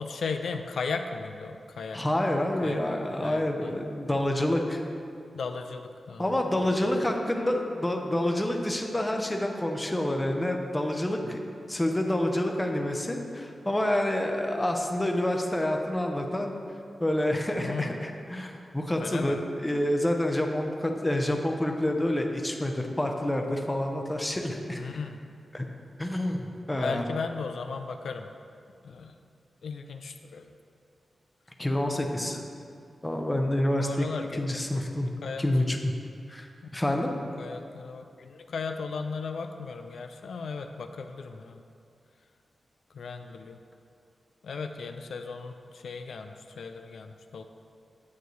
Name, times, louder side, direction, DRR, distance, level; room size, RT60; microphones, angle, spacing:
voice 1, 0.0-2.0 2.6-2.9 3.2-3.7 5.3-7.0 17.6-18.0 19.0-19.4 24.7-25.2 26.7-28.3 28.8-29.2 29.6-30.5 32.1-32.7 33.8-34.6 34.9-35.0 35.2-35.5 37.4-41.6 42.9-43.6 44.4-47.4, left 4 dB, 85° left, 6 dB, 0.4 m, -36 dB
voice 2, 1.9-4.8 6.2-11.4 11.7-16.5 17.0-24.8 25.5-25.7 26.0-27.0 31.6-32.4 33.0-34.1 34.4-35.1 35.4-35.9 36.3-36.5 36.7-37.1, left 1 dB, 10° left, 2 dB, 0.7 m, -28 dB
9.4 x 8.1 x 3.1 m, 2.4 s
wide cardioid pair, 145°, 0 cm